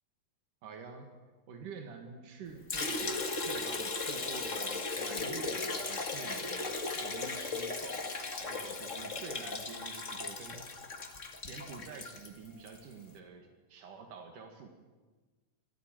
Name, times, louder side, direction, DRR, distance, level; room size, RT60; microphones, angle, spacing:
voice 1, 0.6-1.1 1.5-6.7 7.0-10.7 11.4-14.7, right 5 dB, 90° right, 4 dB, 3.5 m, -47 dB
Liquid, 2.7-12.8, left 3 dB, 30° left, 1.6 m, -37 dB
25.5 x 15.5 x 9.2 m, 1.3 s
omnidirectional pair, 3.6 m